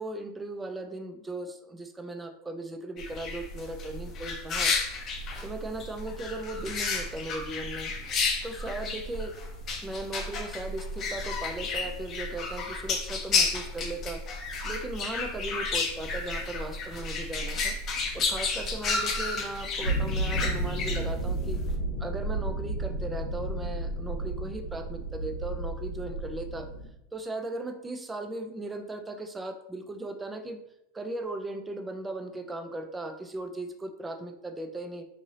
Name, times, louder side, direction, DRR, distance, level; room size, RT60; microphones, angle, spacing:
voice 1, 0.0-4.7 5.4-7.9 8.4-9.4 9.8-14.2 14.6-17.8 18.1-21.6 22.0-26.7 27.1-30.6 30.9-35.0, right 2 dB, 15° right, 6 dB, 0.4 m, -37 dB
sound 1, 3.0-21.7, left 4 dB, 35° left, 0.6 m, -32 dB
sound 2, 19.8-26.9, right 2 dB, 80° left, 0.8 m, -32 dB
2.6 x 2.6 x 3.1 m, 0.84 s
supercardioid pair, 120°, 0 cm